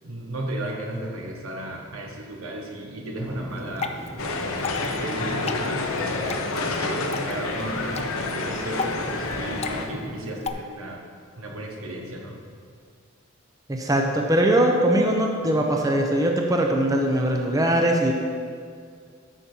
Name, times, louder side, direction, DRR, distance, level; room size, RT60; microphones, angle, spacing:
voice 1, 0.0-4.0 4.8-11.0 11.4-12.4, right 1 dB, 75° right, 1 dB, 1.5 m, -34 dB
sound 1, 3.1-10.2, right 1 dB, 35° right, 2.4 m, -39 dB
Water / Drip, 3.5-10.5, left 4 dB, 30° left, 0.5 m, -36 dB
sound 2, 4.2-9.9, left 3 dB, 85° left, 1.0 m, -29 dB
voice 2, 13.7-18.1, right 1 dB, 15° right, 1 dB, 0.7 m, -21 dB
11.5 x 6.9 x 4.5 m, 2.1 s
head